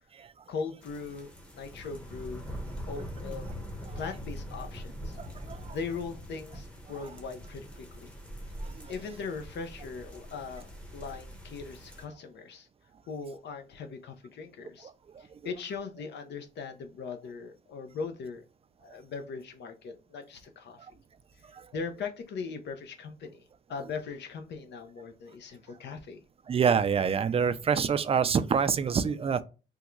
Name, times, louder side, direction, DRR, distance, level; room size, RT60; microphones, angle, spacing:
voice 1, 0.5-2.5 2.9-3.4 4.0-5.2 5.7-8.1 8.9-10.6 10.9-12.7 13.1-14.9 15.2-18.4 18.8-20.8 21.7-23.4 23.7-26.2, left 5 dB, 60° left, 0.6 m, -39 dB
sound 1, 0.8-12.0, equal, 5° left, 0.8 m, -43 dB
voice 2, 26.5-29.4, right 6 dB, 30° right, 0.4 m, -25 dB
3.5 x 2.2 x 3.0 m
cardioid pair, 90°, 20 cm